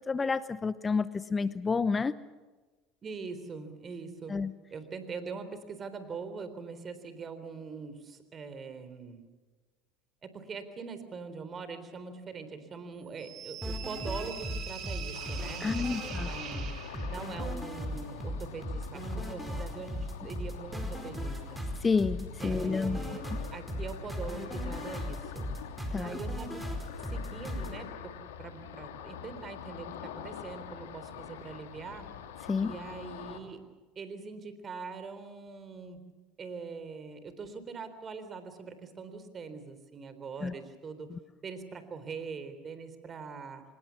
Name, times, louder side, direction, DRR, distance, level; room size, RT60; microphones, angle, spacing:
voice 1, 0.1-2.1 4.3-4.5 15.6-16.3 21.8-23.0 25.9-26.1 32.5-32.7 40.4-40.5, left 4 dB, 25° left, 16 dB, 0.8 m, -29 dB
voice 2, 3.0-4.4 4.7-9.3 10.2-16.7 17.1-21.6 22.4-25.5 25.9-26.7 27.1-32.1 32.6-33.6 34.0-36.1 36.4-41.1 41.4-43.6, right 5 dB, 35° right, 11 dB, 3.8 m, -43 dB
sound 1, 13.2-17.4, right 9 dB, 55° right, 3.2 m, -43 dB
sound 2, 13.6-27.7, equal, 5° right, 4.8 m, -37 dB
Ocean, 15.1-33.4, left 9 dB, 85° left, 2.0 m, -46 dB
25.5 x 20.5 x 7.2 m, 1.3 s
hypercardioid pair, 85°, 0 cm